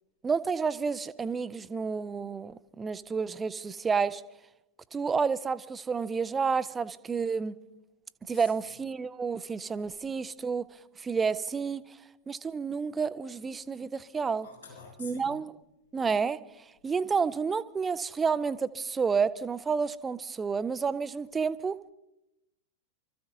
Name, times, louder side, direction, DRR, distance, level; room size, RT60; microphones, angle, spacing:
voice 1, 0.2-4.2 4.9-7.5 8.3-10.7 11.0-11.8 12.3-14.5 15.0-15.5 15.9-16.4 16.8-21.8, right 5 dB, 15° right, 0.6 m, -30 dB
voice 2, 14.4-15.4, left 4 dB, 75° left, 7.4 m, -47 dB
28.0 x 14.0 x 2.7 m
figure-of-eight pair, 90°, 0 cm